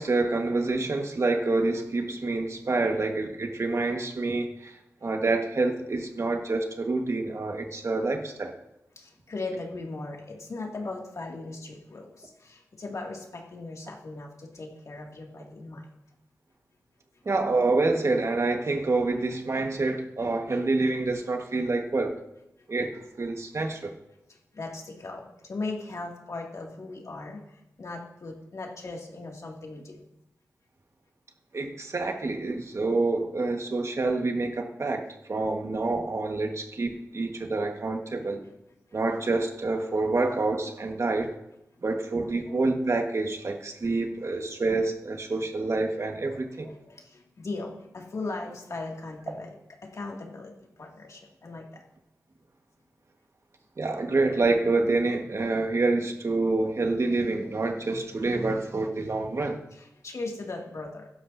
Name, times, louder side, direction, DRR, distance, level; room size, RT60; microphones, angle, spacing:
voice 1, 0.0-8.5 17.2-22.2 22.7-23.9 31.5-38.4 38.9-41.3 41.8-46.7 53.8-59.6, right 3 dB, 55° right, 3 dB, 1.6 m, -27 dB
voice 2, 9.0-15.9 24.3-30.0 42.5-42.6 46.6-49.6 49.8-51.8 59.7-61.1, left 3 dB, 65° left, 0 dB, 2.4 m, -38 dB
16.5 x 12.0 x 2.8 m, 0.87 s
wide cardioid pair, 65°, 6 cm